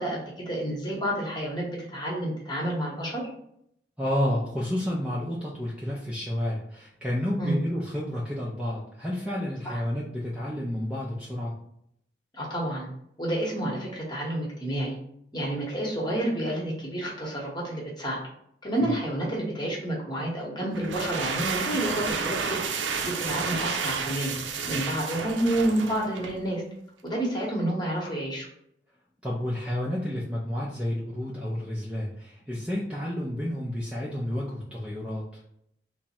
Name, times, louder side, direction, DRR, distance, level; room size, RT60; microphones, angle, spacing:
voice 1, 0.0-3.2 7.4-7.6 9.6-9.8 12.3-12.9 13.2-15.0 15.3-18.2 18.6-22.6 23.0-24.3 24.7-26.6 27.0-28.5, right 1 dB, 25° left, -3 dB, 1.0 m, -29 dB
voice 2, 4.0-11.6 18.8-18.9 29.2-35.2, left 1 dB, 5° right, -6 dB, 0.4 m, -30 dB
sound 1, 20.7-26.4, right 5 dB, 85° right, 0.5 m, -31 dB
3.5 x 2.0 x 4.2 m, 0.73 s
head